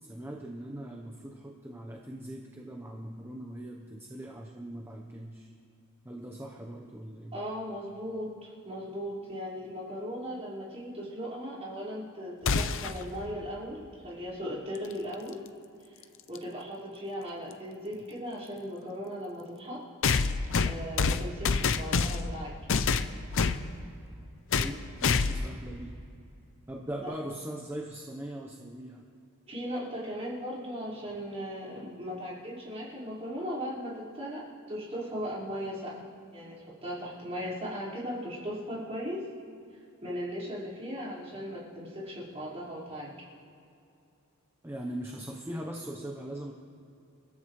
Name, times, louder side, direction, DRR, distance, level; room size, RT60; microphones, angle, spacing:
voice 1, 0.0-5.5 6.0-7.3 24.5-25.9 26.7-29.0 44.6-46.5, right 1 dB, 10° right, 0 dB, 1.0 m, -40 dB
voice 2, 7.3-15.4 15.9-16.0 16.3-19.8 20.6-22.5 27.0-27.1 29.5-34.4 34.7-35.9 36.3-36.5 36.8-39.2 40.0-43.1, equal, 30° right, -8 dB, 5.0 m, -37 dB
sound 1, 12.5-13.0 15.1-15.2 16.3-16.4 20.0-22.3 22.7-23.6 24.5-24.8 25.0-25.5, left 4 dB, 60° left, 0.6 m, -26 dB
29.5 x 13.5 x 3.3 m, 2.7 s
head